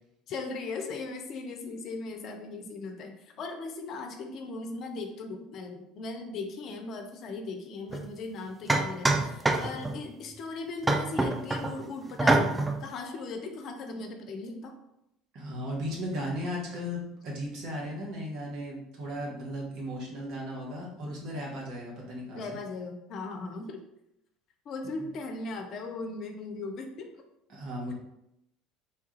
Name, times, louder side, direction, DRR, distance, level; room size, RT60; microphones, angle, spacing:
voice 1, 0.3-12.5 12.8-14.7 22.3-23.8 24.7-27.1, left 3 dB, 50° left, 4 dB, 0.4 m, -38 dB
sound 1, 7.9-8.0 8.7-10.0 10.8-11.7 12.2-12.8, right 2 dB, 15° right, 0.4 m, -25 dB
voice 2, 15.3-22.6 25.0-25.1 27.5-27.9, equal, 60° right, -2 dB, 1.0 m, -36 dB
3.0 x 2.3 x 2.9 m, 0.83 s
hypercardioid pair, 65°, 0 cm